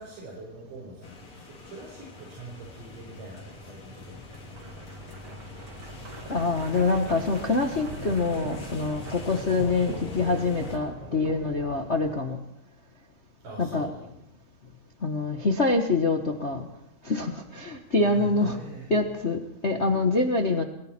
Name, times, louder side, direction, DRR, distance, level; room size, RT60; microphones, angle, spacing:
voice 1, 0.0-4.7 13.4-14.0 17.9-18.9, right 3 dB, 85° right, -2 dB, 6.1 m, -43 dB
sound 1, 1.0-10.8, left 3 dB, 55° left, 4.4 m, -45 dB
sound 2, 1.6-12.1, left 1 dB, 15° right, 4.1 m, -48 dB
sound 3, 4.2-12.2, right 2 dB, 40° right, 3.0 m, -42 dB
voice 2, 6.3-12.4 13.6-13.9 15.0-16.7 17.0-18.6 18.9-20.6, left 3 dB, 85° left, 3 dB, 0.6 m, -25 dB
28.5 x 21.0 x 4.4 m, 0.76 s
omnidirectional pair, 3.7 m